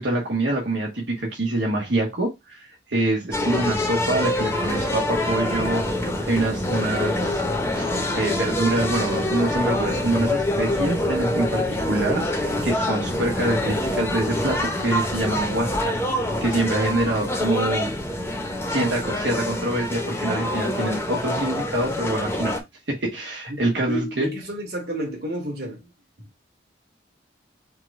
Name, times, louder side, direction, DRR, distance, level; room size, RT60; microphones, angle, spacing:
voice 1, 0.0-7.4 7.7-17.9 18.7-22.5 22.9-24.3, right 1 dB, 85° right, 1.2 m, -25 dB
sound 1, 3.3-22.6, left 1 dB, 15° left, 0.8 m, -26 dB
voice 2, 23.9-25.8, equal, 60° right, 1.9 m, -30 dB
4.6 x 2.3 x 4.8 m
head